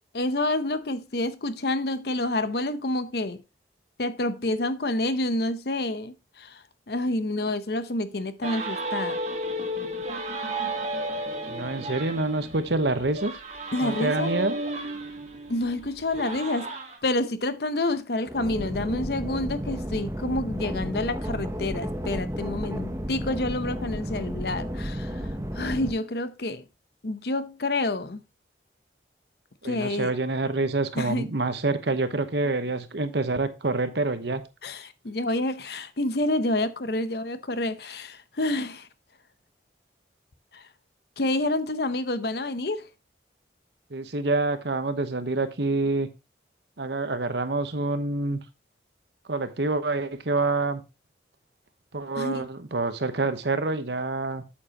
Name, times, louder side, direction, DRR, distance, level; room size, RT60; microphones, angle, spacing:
voice 1, 0.1-3.4 4.0-9.2 13.7-14.3 15.5-16.7 17.0-25.3 25.5-26.6 27.0-28.2 29.6-30.1 31.0-31.2 34.6-38.9 40.5-40.6 41.2-42.9 52.1-52.4, left 2 dB, 60° left, 0.8 m, -28 dB
sound 1, 8.4-17.0, right 1 dB, 40° right, 1.9 m, -33 dB
voice 2, 11.4-13.3 13.8-14.6 29.6-34.4 43.9-46.1 46.8-48.4 49.3-50.8 51.9-54.4, right 3 dB, 70° right, 1.0 m, -27 dB
sound 2, 18.3-25.9, equal, 15° right, 0.8 m, -32 dB
8.5 x 7.5 x 2.9 m
head